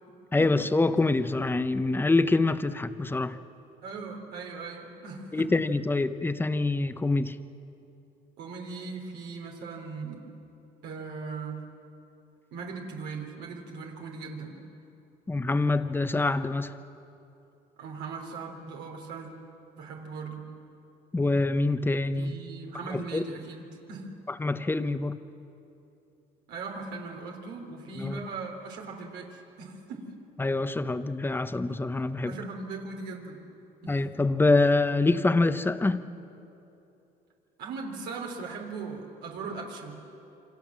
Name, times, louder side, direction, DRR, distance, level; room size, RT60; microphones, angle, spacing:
voice 1, 0.3-3.4 5.3-7.3 15.3-16.7 21.1-22.3 22.9-23.2 24.4-25.2 28.0-28.2 30.4-32.3 33.9-36.0, left 2 dB, 10° left, 11 dB, 0.9 m, -25 dB
voice 2, 3.8-5.5 8.4-10.3 10.8-11.7 12.5-14.6 17.8-19.3 19.8-20.5 22.2-23.6 23.9-24.2 26.5-30.1 32.2-33.4 33.8-34.0 37.6-40.0, right 4 dB, 85° right, 0 dB, 3.6 m, -39 dB
28.5 x 25.0 x 7.5 m, 2.9 s
cardioid pair, 110°, 17 cm